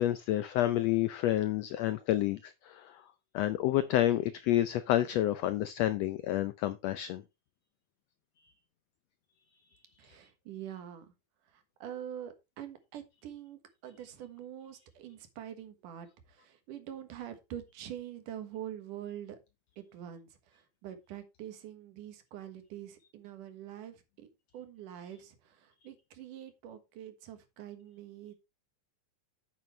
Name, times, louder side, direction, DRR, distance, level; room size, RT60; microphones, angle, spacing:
voice 1, 0.0-3.0 3.3-7.2, left 13 dB, 85° left, 1.4 m, -29 dB
voice 2, 10.0-11.1 11.5-19.4 19.8-28.3, right 10 dB, 90° right, 3.0 m, -45 dB
9.0 x 8.8 x 3.2 m
omnidirectional pair, 3.6 m